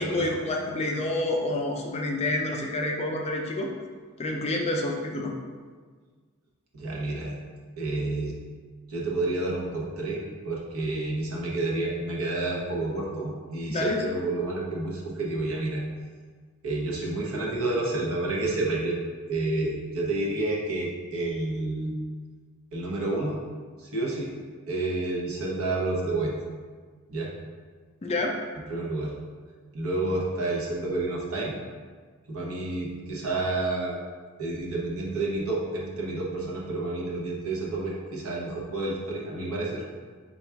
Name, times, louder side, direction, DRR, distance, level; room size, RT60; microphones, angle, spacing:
voice 1, 0.0-3.7 4.2-5.3 13.7-14.0 28.0-28.4, left 2 dB, 30° left, 1 dB, 0.4 m, -28 dB
voice 2, 6.7-7.4 7.8-8.3 8.9-15.8 16.6-19.0 19.3-21.9 22.7-23.4 23.8-24.3 24.7-26.3 27.1-27.3 28.7-29.1 29.7-31.5 32.3-34.0 34.4-39.8, right 2 dB, 70° right, -3 dB, 0.9 m, -29 dB
3.9 x 2.3 x 4.5 m, 1.5 s
head